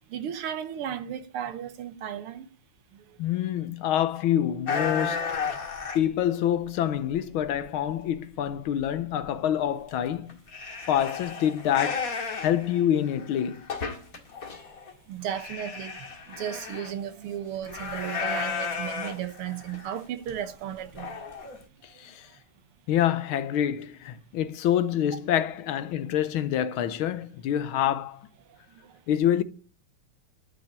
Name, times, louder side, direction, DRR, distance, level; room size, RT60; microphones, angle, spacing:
voice 1, 0.1-2.5 15.1-21.3 22.0-22.1 28.7-28.9, right 9 dB, 85° right, 1.9 m, -35 dB
voice 2, 3.2-5.3 5.9-10.4 10.9-12.1 12.4-13.8 21.8-22.3 22.9-28.3 29.1-29.4, left 10 dB, 75° left, 1.6 m, -26 dB
sound 1, 4.7-6.1 6.6-7.6 7.9-8.0 8.5-8.6 8.8-9.0 9.2-9.3 9.9-10.0 10.3-14.9 15.3-16.9 17.6-20.0 20.3-20.4 20.9-21.6, left 5 dB, 40° left, 2.2 m, -34 dB
11.5 x 5.9 x 8.8 m
omnidirectional pair, 2.4 m